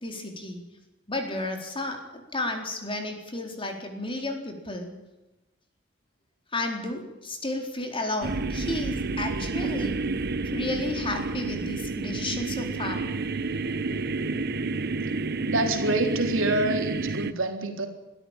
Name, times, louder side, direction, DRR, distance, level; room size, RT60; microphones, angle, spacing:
voice 1, 0.0-0.6 1.1-4.9 6.5-10.1 10.4-13.1, left 2 dB, 25° left, 3 dB, 4.2 m, -32 dB
sound 1, 8.2-17.3, right 3 dB, 55° right, 1.0 m, -30 dB
voice 2, 15.5-17.9, right 2 dB, 80° right, 4 dB, 3.9 m, -26 dB
23.0 x 13.5 x 9.0 m, 1.0 s
head